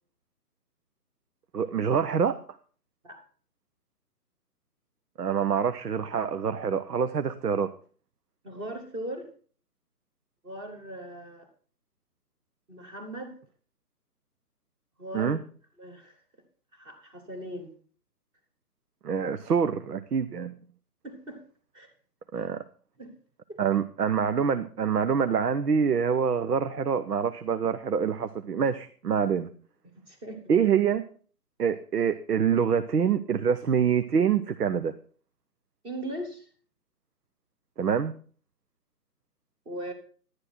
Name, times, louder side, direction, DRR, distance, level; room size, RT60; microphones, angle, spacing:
voice 1, 1.5-2.4 5.2-7.7 15.1-15.4 19.0-20.5 22.3-22.6 23.6-29.5 30.5-31.0 31.6-34.9 37.8-38.1, right 7 dB, 75° right, 10 dB, 1.0 m, -25 dB
voice 2, 8.4-9.3 10.4-11.5 12.7-13.4 15.0-15.4 15.8-16.2 16.7-17.7 21.0-21.4 21.7-21.9 23.0-23.1 23.5-23.6 30.1-30.4 35.8-36.5 39.6-39.9, right 1 dB, 10° right, 5 dB, 1.2 m, -39 dB
11.5 x 9.7 x 4.4 m, 0.42 s
figure-of-eight pair, 145°, 47 cm